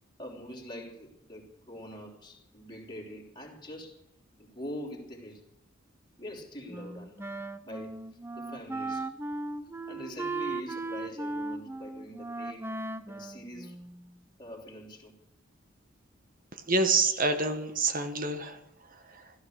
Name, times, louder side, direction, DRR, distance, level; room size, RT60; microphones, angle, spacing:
voice 1, 0.2-4.0 4.4-5.4 6.2-7.2 7.6-9.1 9.9-12.7 13.1-13.8 14.4-15.1, equal, 20° left, 3.3 m, -44 dB
Wind instrument woodwind instrument, 6.7-14.2, right 2 dB, 10° right, 0.6 m, -37 dB
voice 2, 16.7-18.6 19.1-19.2, right 3 dB, 45° right, 1.5 m, -27 dB
15.5 x 13.5 x 6.6 m
head